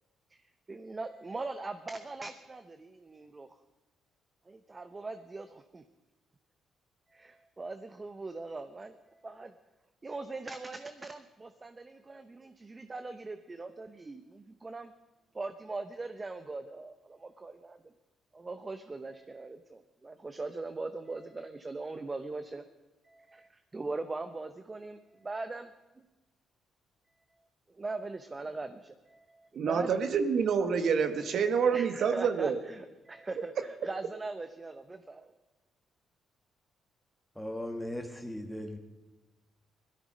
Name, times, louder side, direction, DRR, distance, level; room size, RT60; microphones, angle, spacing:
voice 1, 0.7-3.5 4.5-5.8 7.1-9.5 10.0-14.9 15.3-17.8 18.3-22.6 23.0-25.6 27.7-29.9 31.7-35.3, right 3 dB, 25° right, 9 dB, 0.8 m, -41 dB
voice 2, 29.5-32.6, right 6 dB, 65° right, 8 dB, 1.3 m, -27 dB
voice 3, 37.4-38.8, left 1 dB, 5° left, 5 dB, 2.0 m, -38 dB
17.5 x 13.0 x 5.4 m, 1.1 s
cardioid pair, 90°, 0 cm